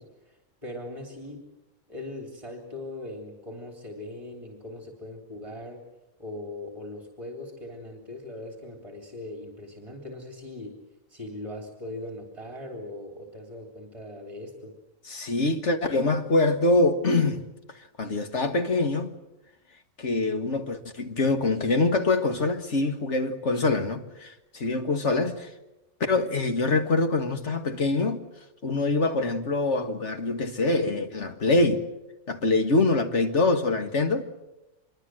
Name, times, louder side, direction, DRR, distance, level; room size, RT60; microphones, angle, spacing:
voice 1, 0.0-1.4 1.9-5.9 6.2-10.8 11.1-14.7, left 1 dB, 25° right, 3.6 m, -40 dB
voice 2, 15.1-17.4 18.0-19.1 20.0-25.5 26.0-28.2 28.6-31.8 32.3-34.3, left 2 dB, 65° left, 2.1 m, -24 dB
25.0 x 23.0 x 7.8 m
omnidirectional pair, 1.3 m